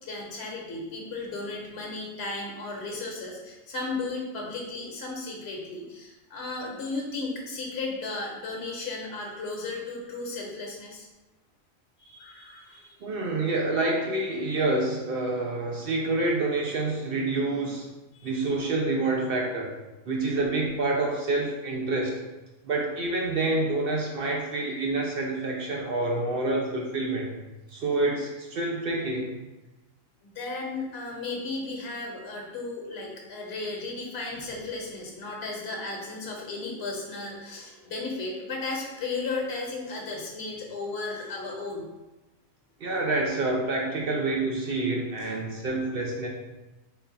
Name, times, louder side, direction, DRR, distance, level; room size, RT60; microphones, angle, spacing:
voice 1, 0.0-11.1 12.0-13.0 18.1-18.3 30.2-41.9 45.2-45.3, left 3 dB, 55° left, -1 dB, 1.1 m, -35 dB
voice 2, 13.0-17.9 18.2-19.7 20.1-22.1 22.6-27.3 27.7-29.3 42.8-46.3, right 2 dB, 60° right, -1 dB, 0.6 m, -27 dB
3.7 x 2.3 x 3.9 m, 1.1 s
omnidirectional pair, 1.4 m